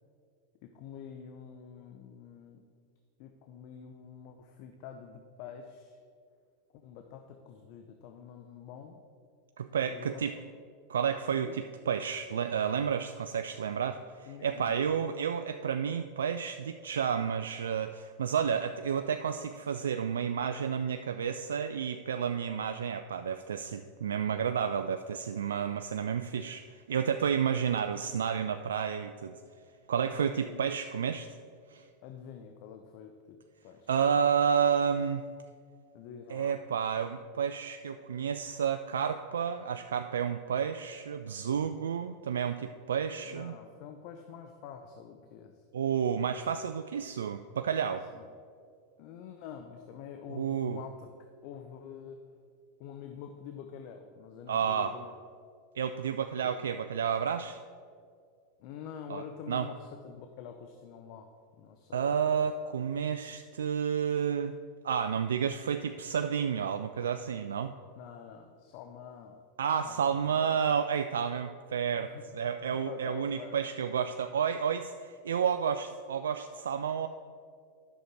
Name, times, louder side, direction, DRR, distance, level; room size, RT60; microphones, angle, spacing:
voice 1, 0.6-2.6 3.2-6.0 6.7-8.9 9.9-10.5 11.4-11.6 14.3-15.2 30.1-30.7 32.0-33.9 35.9-36.5 43.2-45.6 48.1-48.3 49.0-51.1 51.4-52.3 52.8-55.1 56.4-56.6 58.6-61.3 61.6-62.2 62.8-62.9 68.0-69.4 69.8-70.5 71.9-72.2 72.9-73.7, left 7 dB, 55° left, 6 dB, 0.7 m, -47 dB
voice 2, 9.6-10.3 10.9-29.4 29.9-31.3 31.7-31.8 33.9-35.2 36.3-43.5 45.7-48.0 50.4-50.8 54.5-54.9 55.8-57.6 59.1-59.2 59.5-59.7 61.9-64.5 64.8-67.7 69.6-72.1 72.3-77.1, right 7 dB, 80° right, 8 dB, 0.3 m, -31 dB
10.0 x 6.5 x 4.7 m, 2.2 s
hypercardioid pair, 95°, 0 cm